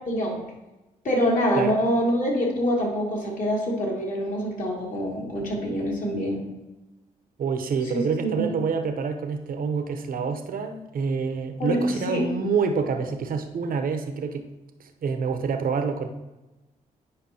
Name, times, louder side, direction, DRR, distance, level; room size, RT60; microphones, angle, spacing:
voice 1, 0.1-0.4 1.0-6.4 7.9-8.5 11.6-11.8 12.1-12.2, equal, 50° left, -3 dB, 2.6 m, -25 dB
voice 2, 7.4-14.5 15.0-16.1, right 5 dB, 60° right, 6 dB, 0.9 m, -27 dB
9.7 x 5.1 x 2.9 m, 1.0 s
supercardioid pair, 50°, 17 cm